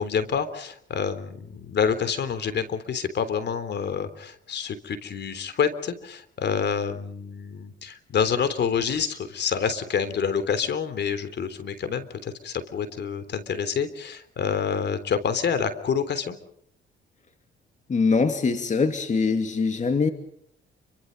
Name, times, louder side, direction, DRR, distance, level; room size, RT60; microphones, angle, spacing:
voice 1, 0.0-16.4, left 6 dB, 60° left, 12 dB, 3.5 m, -27 dB
voice 2, 17.9-20.1, left 4 dB, 35° left, 7 dB, 2.5 m, -23 dB
29.5 x 24.5 x 5.4 m, 0.68 s
cardioid pair, 90°, 20 cm